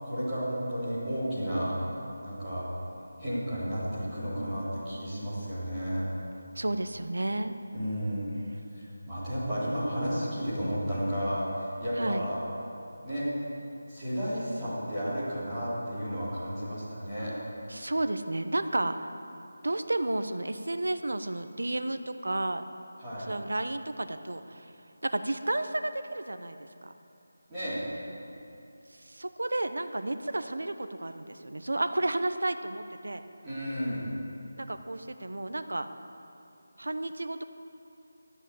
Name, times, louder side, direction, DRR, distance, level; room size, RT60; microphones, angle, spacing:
voice 1, 0.0-2.0 2.2-2.6 3.2-6.0 7.7-8.3 8.7-12.4 13.0-13.3 13.9-17.3 23.0-23.3 27.5-27.8 33.4-34.1, equal, 5° right, -16 dB, 3.6 m, -32 dB
voice 2, 6.6-7.6 12.0-12.2 17.7-19.1 19.6-22.6 23.3-24.7 25.0-26.9 29.0-33.2 34.6-35.9 36.8-37.4, right 2 dB, 90° right, 9 dB, 0.9 m, -32 dB
13.0 x 8.1 x 8.5 m, 2.8 s
figure-of-eight pair, 180°, 0 cm